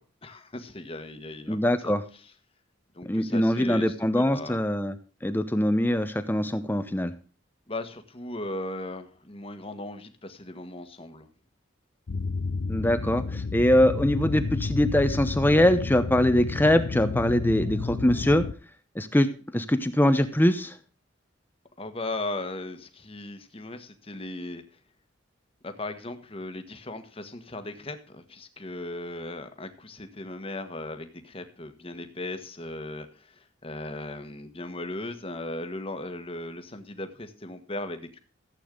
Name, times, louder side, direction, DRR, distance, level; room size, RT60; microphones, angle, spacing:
voice 1, 0.2-1.6 1.8-2.3 2.9-4.6 7.7-11.3 21.8-24.6 25.6-38.2, left 2 dB, 30° left, 8 dB, 1.4 m, -37 dB
voice 2, 1.5-2.0 3.0-5.0 5.2-7.1 12.7-18.4 19.0-19.3 19.5-20.7, left 1 dB, 10° left, 10 dB, 0.8 m, -23 dB
sound 1, 12.1-18.5, left 4 dB, 70° left, 0.6 m, -31 dB
15.0 x 8.4 x 3.8 m, 0.38 s
head